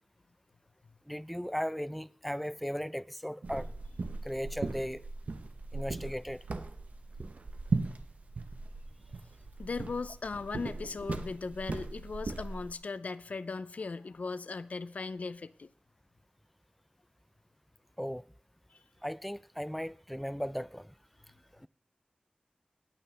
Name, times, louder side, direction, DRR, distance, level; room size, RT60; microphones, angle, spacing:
voice 1, 1.1-3.7 4.2-5.1 5.7-6.4 18.0-18.2 19.0-20.9 21.6-21.7, equal, ahead, 0.4 m, -36 dB
sound 1, 3.4-12.7, right 3 dB, 80° right, 0.9 m, -38 dB
voice 2, 9.6-15.7, left 4 dB, 80° left, 0.5 m, -38 dB
17.0 x 9.0 x 3.3 m
wide cardioid pair, 60°, 2 cm